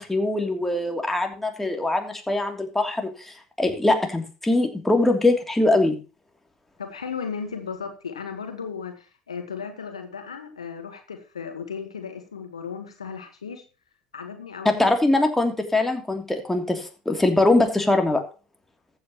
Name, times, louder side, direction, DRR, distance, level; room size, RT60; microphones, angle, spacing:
voice 1, 0.0-5.9 14.6-18.2, left 2 dB, 10° left, 4 dB, 3.0 m, -22 dB
voice 2, 6.8-13.6 14.1-14.9, left 6 dB, 90° left, 7 dB, 1.5 m, -35 dB
14.5 x 8.1 x 3.1 m, 0.33 s
hypercardioid pair, 75°, 3 cm